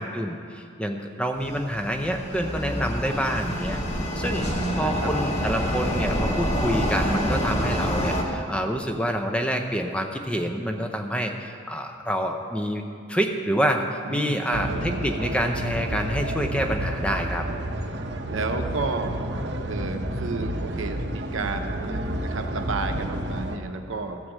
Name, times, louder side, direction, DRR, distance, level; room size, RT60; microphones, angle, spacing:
voice 1, 0.0-4.5 4.8-12.8 13.1-17.5, equal, 5° left, 4 dB, 0.5 m, -27 dB
sound 1, 1.4-8.2, equal, 35° left, 1.3 m, -27 dB
voice 2, 4.4-5.1 14.1-15.0 18.3-19.2 19.7-24.2, right 3 dB, 85° right, 6 dB, 0.8 m, -32 dB
sound 2, 14.5-23.6, right 1 dB, 60° right, 0.7 m, -30 dB
14.0 x 4.8 x 7.4 m, 2.6 s
head